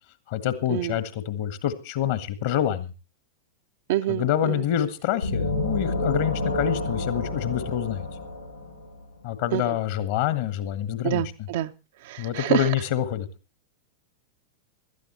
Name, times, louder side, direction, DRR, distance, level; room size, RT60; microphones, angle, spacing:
voice 1, 0.3-2.9 4.1-8.1 9.2-11.2 12.2-13.3, left 11 dB, 50° left, 1.5 m, -26 dB
voice 2, 3.9-4.6 9.5-9.8 11.0-11.7 12.0-12.7, right 13 dB, 55° right, 0.7 m, -27 dB
sound 1, 5.2-9.0, left 2 dB, 85° left, 7.2 m, -29 dB
17.0 x 12.5 x 4.3 m
figure-of-eight pair, 90°, 0 cm